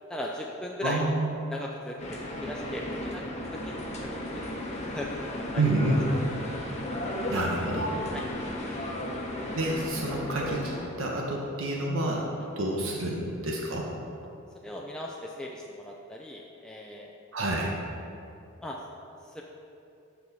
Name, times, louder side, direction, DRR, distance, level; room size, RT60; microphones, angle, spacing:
voice 1, 0.1-1.0 1.5-3.2 3.5-3.6 4.0-4.5 4.8-5.6 8.1-8.3 14.6-17.1 18.6-18.8 19.3-19.4, left 1 dB, 5° left, -2 dB, 0.4 m, -38 dB
voice 2, 0.8-1.4 5.5-6.0 7.3-8.0 9.6-12.2 12.6-13.9 17.3-17.7, right 1 dB, 80° right, -2 dB, 1.1 m, -28 dB
sound 1, 2.0-10.9, left 1 dB, 35° left, 1.0 m, -34 dB
12.5 x 4.7 x 4.1 m, 2.6 s
head